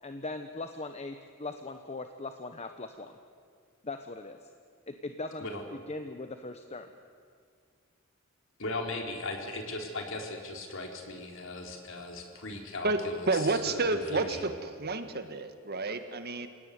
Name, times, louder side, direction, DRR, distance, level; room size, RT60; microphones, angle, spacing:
voice 1, 0.0-3.2 3.8-4.4 4.9-5.5 5.7-6.9, left 2 dB, 30° left, 7 dB, 1.1 m, -40 dB
voice 2, 8.6-14.5, left 2 dB, 70° left, 3 dB, 3.9 m, -38 dB
voice 3, 12.8-16.5, right 3 dB, 50° right, 8 dB, 1.7 m, -30 dB
28.5 x 17.5 x 9.5 m, 2.1 s
head